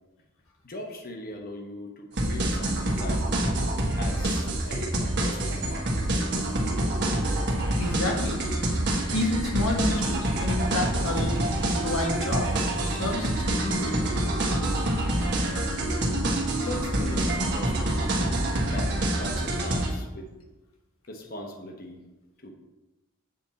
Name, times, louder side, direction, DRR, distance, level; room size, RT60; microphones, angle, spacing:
voice 1, 0.6-3.2 3.9-6.2 16.6-18.2 18.6-20.3 21.1-22.0 22.4-22.5, left 1 dB, 45° left, 2 dB, 1.0 m, -39 dB
sound 1, 2.2-19.9, right 1 dB, 55° right, 1.2 m, -26 dB
voice 2, 7.8-8.4 9.1-13.9, left 1 dB, 80° left, 0 dB, 1.3 m, -30 dB
7.7 x 4.4 x 4.1 m, 1.1 s
head